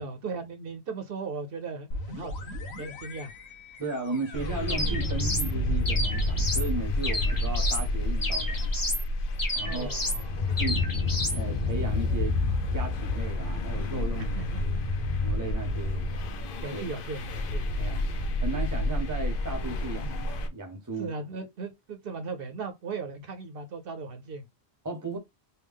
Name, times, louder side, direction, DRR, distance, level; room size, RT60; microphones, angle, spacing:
voice 1, 0.0-3.3 9.6-10.9 14.3-14.8 16.6-18.0 21.0-24.5, right 4 dB, 65° right, 0.8 m, -38 dB
sound 1, 1.9-11.5, left 1 dB, 85° left, 1.1 m, -40 dB
voice 2, 3.8-8.9 9.5-10.0 10.6-10.8 11.3-12.4 12.7-14.4 15.2-16.1 16.7-16.8 17.8-18.0 18.4-21.1 24.8-25.2, right 2 dB, 20° right, 0.8 m, -35 dB
sound 2, 4.3-20.5, left 2 dB, 60° left, 0.7 m, -29 dB
sound 3, 4.7-5.5 5.8-6.7 7.0-7.9 8.2-9.0 9.4-10.2 10.6-11.4, left 1 dB, 20° left, 0.8 m, -31 dB
3.3 x 2.4 x 3.5 m
omnidirectional pair, 1.1 m